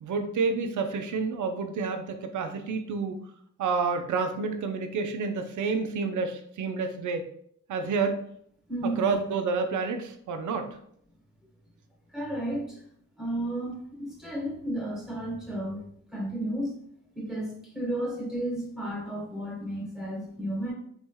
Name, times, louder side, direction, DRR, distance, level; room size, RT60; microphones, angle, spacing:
voice 1, 0.0-3.2 3.6-7.3 7.7-8.2 9.0-10.8, right 4 dB, 60° right, 6 dB, 0.5 m, -29 dB
voice 2, 8.7-9.2 12.1-12.8 13.2-15.8 16.1-16.7 17.1-20.7, right 1 dB, ahead, -4 dB, 1.2 m, -33 dB
3.0 x 3.0 x 2.2 m, 0.67 s
cardioid pair, 80°, 34 cm